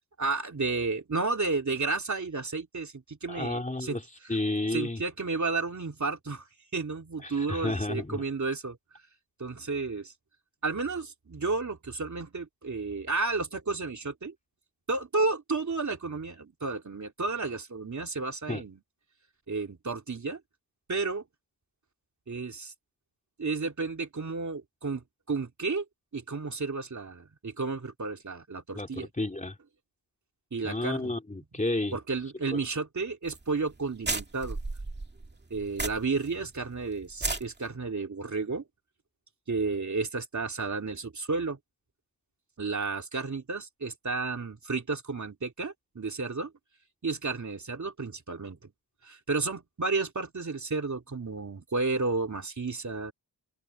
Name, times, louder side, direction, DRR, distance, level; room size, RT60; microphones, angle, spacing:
voice 1, 0.2-4.0 4.7-6.5 6.7-8.8 9.4-10.1 10.6-14.3 14.9-18.8 19.5-20.4 20.9-21.2 22.3-22.7 23.4-25.8 26.1-29.1 30.5-31.1 31.9-34.6 35.5-38.6 39.5-41.6 42.6-46.5 47.0-48.7 49.0-53.1, right 3 dB, 35° right, 3.1 m, -32 dB
voice 2, 3.3-4.0 4.3-5.0 7.2-8.2 18.5-18.6 28.7-29.6 30.6-32.0 32.5-32.6, left 2 dB, 15° left, 2.8 m, -31 dB
sound 1, 33.3-33.4 33.7-33.8 34.0-36.3 36.6-36.7 37.1-37.4, right 3 dB, 20° right, 2.2 m, -33 dB
open air
wide cardioid pair, 145°, 47 cm